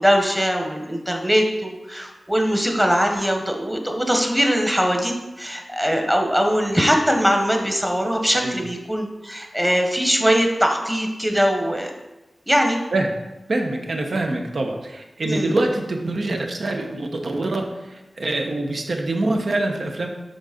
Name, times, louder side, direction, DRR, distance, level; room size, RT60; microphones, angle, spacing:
voice 1, 0.0-11.9 12.5-12.8 15.2-15.6, equal, 5° right, 3 dB, 1.0 m, -21 dB
voice 2, 13.5-20.1, right 2 dB, 70° right, 3 dB, 0.9 m, -25 dB
6.2 x 3.9 x 5.1 m, 1.0 s
wide cardioid pair, 70°, 0 cm